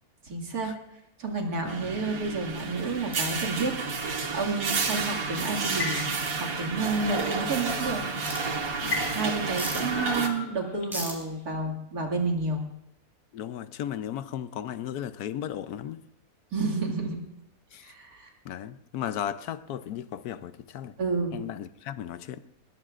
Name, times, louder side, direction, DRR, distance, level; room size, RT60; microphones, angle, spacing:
voice 1, 0.2-0.7 1.2-3.7 4.3-6.0 6.4-8.0 9.1-12.6 16.5-17.2 17.8-18.3 21.0-21.4, right 3 dB, 85° right, 2.7 m, -30 dB
sound 1, 1.7-10.3, right 4 dB, 65° right, 1.9 m, -31 dB
sound 2, 3.0-4.2 5.1-6.4 6.8-7.4 8.0-8.2 8.9-11.1, left 4 dB, 65° left, 2.1 m, -36 dB
sound 3, 3.1-3.4 4.7-4.9 6.2-6.3 8.2-8.4 9.6-9.8 10.9-11.1, equal, ahead, 4.4 m, -36 dB
voice 2, 8.8-9.2 9.8-9.9 13.3-16.0 17.7-17.9 18.4-20.9 21.3-22.4, left 10 dB, 90° left, 1.2 m, -36 dB
21.0 x 20.5 x 2.5 m
omnidirectional pair, 1.6 m